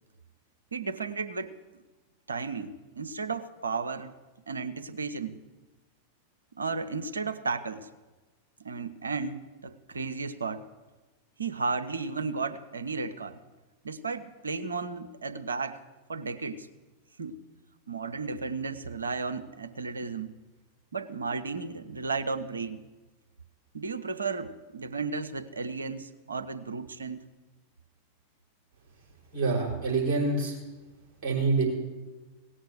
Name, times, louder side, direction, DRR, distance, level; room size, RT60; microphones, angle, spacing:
voice 1, 0.7-1.5 2.3-4.1 4.5-5.4 6.6-7.9 8.6-10.6 11.4-13.4 13.8-15.8 16.1-16.7 17.2-17.4 17.9-20.3 20.9-22.8 23.7-27.2, right 4 dB, 75° right, 9 dB, 0.7 m, -34 dB
voice 2, 29.3-30.6 31.2-31.6, right 3 dB, 40° right, -2 dB, 5.1 m, -26 dB
17.5 x 6.4 x 7.8 m, 1.2 s
figure-of-eight pair, 90°, 0 cm